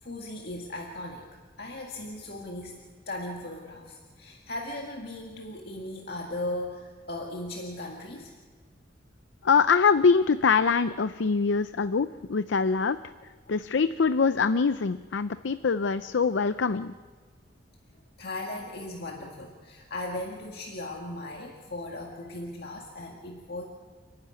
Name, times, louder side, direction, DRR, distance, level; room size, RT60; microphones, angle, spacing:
voice 1, 0.0-8.3 18.2-23.6, left 1 dB, 60° left, 0 dB, 2.0 m, -37 dB
voice 2, 9.4-13.0 13.5-16.9, left 5 dB, 85° left, 12 dB, 0.5 m, -24 dB
29.5 x 10.5 x 9.6 m, 1.5 s
head